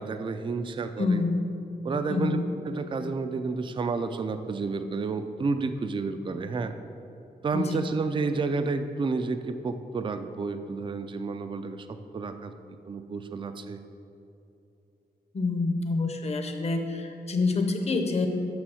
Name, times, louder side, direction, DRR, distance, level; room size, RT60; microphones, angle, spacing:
voice 1, 0.0-1.2 1.8-6.7 7.4-12.5 12.9-13.8, right 4 dB, 30° right, 9 dB, 0.3 m, -30 dB
voice 2, 1.0-1.4 2.1-2.5 7.5-7.8 15.3-18.3, left 3 dB, 40° left, 5 dB, 0.7 m, -27 dB
6.7 x 6.2 x 6.3 m, 2.8 s
wide cardioid pair, 165°, 17 cm